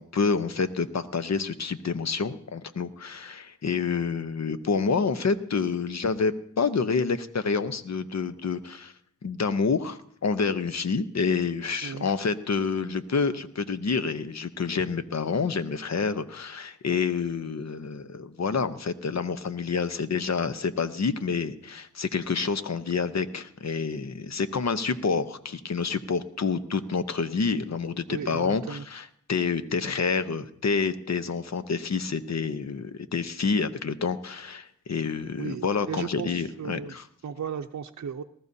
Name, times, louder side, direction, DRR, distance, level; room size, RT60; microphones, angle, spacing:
voice 1, 0.0-8.9 9.2-37.0, left 5 dB, 55° left, 11 dB, 0.8 m, -28 dB
voice 2, 28.1-28.8 35.4-37.0 37.2-38.2, right 7 dB, 60° right, 4 dB, 0.6 m, -35 dB
19.5 x 14.0 x 2.8 m, 0.65 s
cardioid pair, 55°, 32 cm